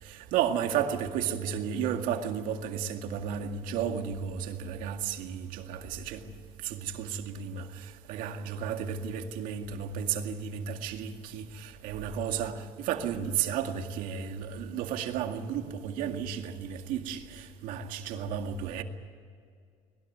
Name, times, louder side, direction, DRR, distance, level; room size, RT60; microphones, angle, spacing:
voice 1, 0.0-6.2 6.6-18.8, right 8 dB, 75° right, 2.1 m, -33 dB
21.5 x 20.0 x 9.3 m
cardioid pair, 140°, 14 cm